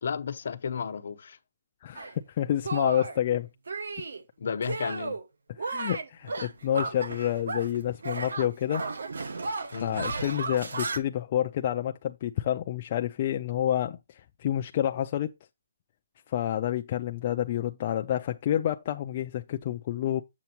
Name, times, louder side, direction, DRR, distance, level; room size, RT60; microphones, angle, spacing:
voice 1, 0.0-1.4 4.4-5.2 9.7-10.0, left 6 dB, 55° left, 0.9 m, -33 dB
voice 2, 1.8-3.5 5.6-8.8 9.8-15.3 16.3-20.2, left 11 dB, 30° left, 0.4 m, -29 dB
Shatter, 1.9-2.1 2.6-3.2 3.7-4.2 4.6-5.2 5.6-7.8 8.0-11.0, right 3 dB, 80° right, 1.4 m, -34 dB
7.8 x 7.1 x 2.9 m
hypercardioid pair, 170°, 0 cm